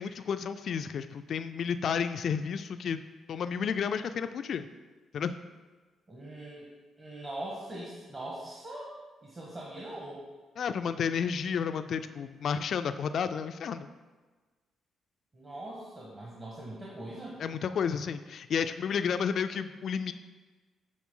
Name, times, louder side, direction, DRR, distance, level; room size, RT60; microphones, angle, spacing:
voice 1, 0.0-3.0 3.3-4.6 5.1-5.3 10.6-13.9 17.4-20.1, left 7 dB, 60° left, 11 dB, 0.3 m, -31 dB
voice 2, 6.1-6.7 7.0-9.0 9.2-10.2 15.3-17.4, right 1 dB, 30° right, -5 dB, 1.3 m, -41 dB
8.5 x 3.9 x 3.8 m, 1.3 s
cardioid pair, 90°, 0 cm